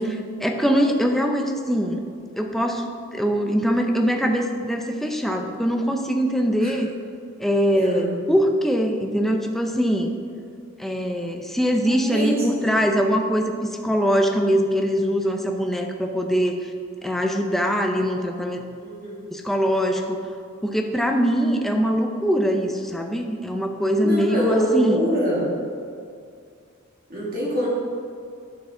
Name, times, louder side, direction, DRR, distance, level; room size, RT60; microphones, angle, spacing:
voice 1, 0.0-2.0 2.4-6.9 7.4-10.1 10.8-16.7 17.0-18.6 19.3-20.2 20.6-25.0, equal, ahead, 3 dB, 0.5 m, -22 dB
voice 2, 7.7-8.1 11.9-12.8 18.8-19.2 24.0-25.6 27.1-27.7, equal, 45° right, -6 dB, 2.2 m, -25 dB
9.4 x 6.5 x 3.8 m, 2.3 s
head